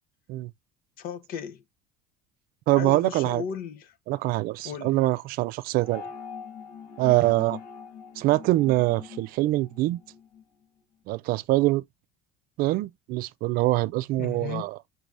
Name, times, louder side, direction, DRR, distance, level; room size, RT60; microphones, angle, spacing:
voice 1, 1.0-1.6 2.7-4.0 4.6-5.0 14.2-14.6, left 8 dB, 60° left, 0.8 m, -35 dB
voice 2, 2.7-3.4 4.1-6.0 7.0-7.6 8.2-10.0 11.1-11.8 12.6-14.7, right 18 dB, 60° right, 0.4 m, -24 dB
sound 1, 5.8-10.4, left 6 dB, 80° left, 1.5 m, -43 dB
6.1 x 3.3 x 2.5 m
cardioid pair, 135°, 17 cm